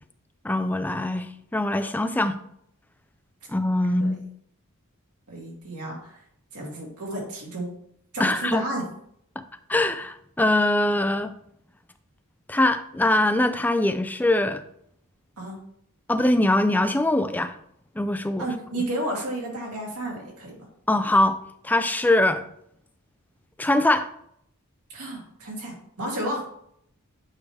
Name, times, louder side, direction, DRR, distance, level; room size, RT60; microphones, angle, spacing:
voice 1, 0.4-2.4 3.5-4.2 8.2-8.6 9.7-11.3 12.5-14.6 16.1-17.5 18.0-18.5 20.9-21.4 21.6-22.4 23.6-24.1, left 1 dB, 10° left, 9 dB, 0.4 m, -22 dB
voice 2, 5.3-6.2 6.5-7.7 8.1-8.8 15.4-15.6 18.4-20.7 24.9-26.4, right 1 dB, 85° right, -2 dB, 2.5 m, -32 dB
8.4 x 4.9 x 3.2 m, 0.70 s
head